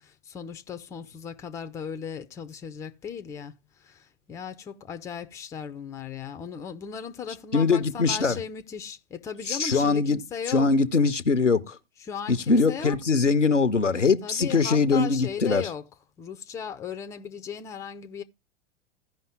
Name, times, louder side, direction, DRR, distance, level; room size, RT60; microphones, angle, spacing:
voice 1, 0.0-10.7 12.0-13.0 14.2-15.8 16.2-18.2, left 7 dB, 10° left, 0.5 m, -37 dB
voice 2, 7.5-8.4 9.5-10.2 10.5-11.8 12.3-15.7, left 4 dB, 90° left, 0.8 m, -22 dB
15.5 x 5.4 x 3.6 m
figure-of-eight pair, 100°, 35 cm